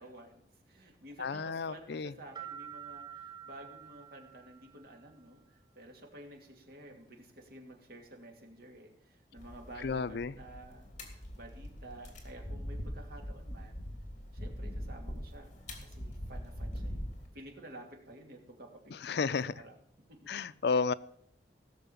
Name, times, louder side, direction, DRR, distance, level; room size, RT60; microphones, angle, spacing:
voice 1, 0.0-13.8 14.3-15.5 15.8-17.0 17.3-19.8 20.1-20.3, right 1 dB, 60° right, 2 dB, 2.6 m, -52 dB
voice 2, 1.2-2.1 9.8-10.3 19.1-19.5 20.3-20.9, left 4 dB, 70° left, 16 dB, 0.5 m, -32 dB
sound 1, 2.4-5.0, right 9 dB, 25° right, 1.0 m, -47 dB
sound 2, 9.4-17.3, equal, 45° left, 3.0 m, -42 dB
17.0 x 6.6 x 7.1 m, 0.70 s
head